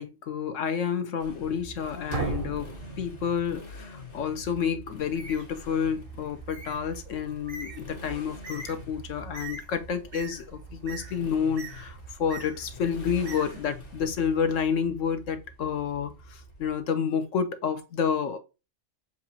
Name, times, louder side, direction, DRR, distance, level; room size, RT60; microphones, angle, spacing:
voice 1, 0.0-18.4, left 7 dB, 75° left, 1.1 m, -29 dB
Motorcycle, 1.2-17.0, equal, 45° left, 1.3 m, -45 dB
sound 1, 2.1-4.0, right 5 dB, 55° right, 0.6 m, -35 dB
Bird, 5.0-14.1, right 4 dB, 90° right, 1.5 m, -45 dB
6.9 x 2.4 x 2.7 m
omnidirectional pair, 1.3 m